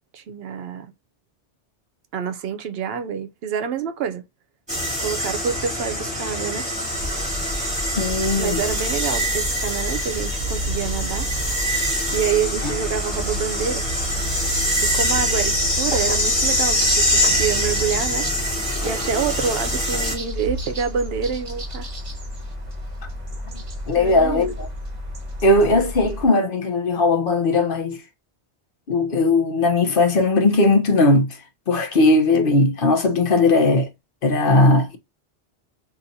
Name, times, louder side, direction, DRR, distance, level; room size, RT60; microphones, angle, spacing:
voice 1, 0.1-0.9 2.1-4.2 5.0-6.7 8.4-11.3 12.1-13.9 14.8-18.3 18.8-21.9 24.0-24.6, right 7 dB, 70° right, 0.8 m, -27 dB
sound 1, 4.7-20.1, equal, 5° right, 2.3 m, -24 dB
sound 2, 6.9-26.3, equal, 30° right, 1.0 m, -31 dB
voice 2, 8.0-8.6 12.6-12.7 23.9-24.7 25.4-28.0 28.9-31.4 31.7-33.9 34.2-35.0, left 2 dB, 55° left, 0.9 m, -18 dB
4.0 x 2.8 x 2.6 m
omnidirectional pair, 1.1 m